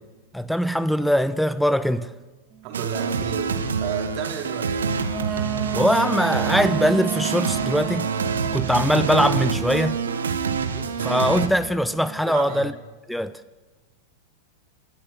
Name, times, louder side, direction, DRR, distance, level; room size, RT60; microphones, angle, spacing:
voice 1, 0.3-2.1 5.7-8.1 8.5-10.0 11.0-12.7 13.1-13.4, equal, ahead, 0.6 m, -21 dB
voice 2, 2.6-3.5 3.8-4.8 10.7-11.1 12.2-12.7, right 8 dB, 40° right, 3.4 m, -32 dB
sound 1, 2.7-11.5, right 5 dB, 70° right, 1.7 m, -26 dB
sound 2, 5.1-9.6 11.0-12.2, right 10 dB, 25° right, 2.3 m, -32 dB
29.5 x 13.5 x 7.7 m
figure-of-eight pair, 90°, 0 cm